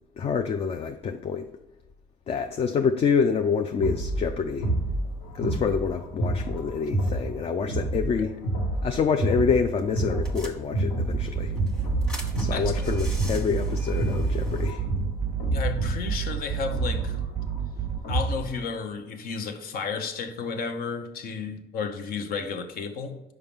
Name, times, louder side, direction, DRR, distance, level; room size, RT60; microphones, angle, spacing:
voice 1, 0.2-1.5 2.3-4.7 5.3-8.3 8.8-11.5 12.4-14.8, left 6 dB, 35° left, 0.4 m, -27 dB
sound 1, 3.8-18.6, right 1 dB, 85° left, 2.0 m, -29 dB
sound 2, 9.4-9.5 9.8-9.9 10.3-11.0 11.5-14.7, right 1 dB, 5° left, 1.2 m, -34 dB
sound 3, 11.1-18.0, right 8 dB, 30° right, 0.4 m, -31 dB
voice 2, 12.5-13.0 15.5-17.2 18.1-23.2, left 5 dB, 60° left, 0.8 m, -33 dB
5.5 x 4.8 x 3.6 m
cardioid pair, 110°, 17 cm